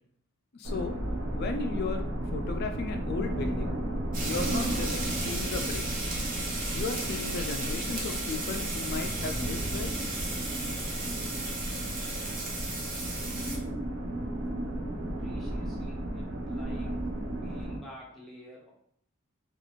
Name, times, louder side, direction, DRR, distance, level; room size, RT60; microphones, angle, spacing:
voice 1, 0.5-1.0 1.3-2.1 2.3-3.8 4.2-6.1 6.7-9.9, left 4 dB, 45° left, 5 dB, 0.4 m, -35 dB
sound 1, 0.6-17.8, right 1 dB, 90° right, 0.7 m, -34 dB
sound 2, 4.1-13.6, right 2 dB, 40° right, 0.7 m, -35 dB
voice 2, 15.2-17.1 17.4-18.7, equal, ahead, -5 dB, 0.7 m, -49 dB
2.6 x 2.4 x 3.0 m, 0.68 s
head